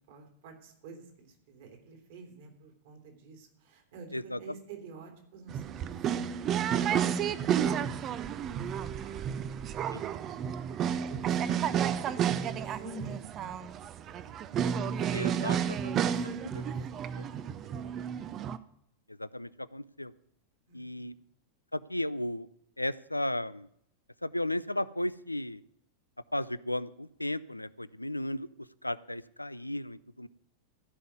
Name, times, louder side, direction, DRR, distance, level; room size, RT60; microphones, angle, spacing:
voice 1, 0.1-6.5 6.8-9.4 10.0-11.7 12.1-14.3 14.8-18.1 20.7-21.1, right 3 dB, 55° right, 3 dB, 2.9 m, -51 dB
sound 1, 5.5-18.6, right 8 dB, 30° right, 0.6 m, -31 dB
voice 2, 15.1-16.1 16.4-16.6 17.2-17.3 19.1-20.1 20.7-21.1 21.7-22.5 22.8-23.7 24.2-25.6 26.3-28.5 28.8-30.3, left 1 dB, 85° left, 17 dB, 0.4 m, -35 dB
14.5 x 5.5 x 9.4 m, 0.73 s
figure-of-eight pair, 90°, 0 cm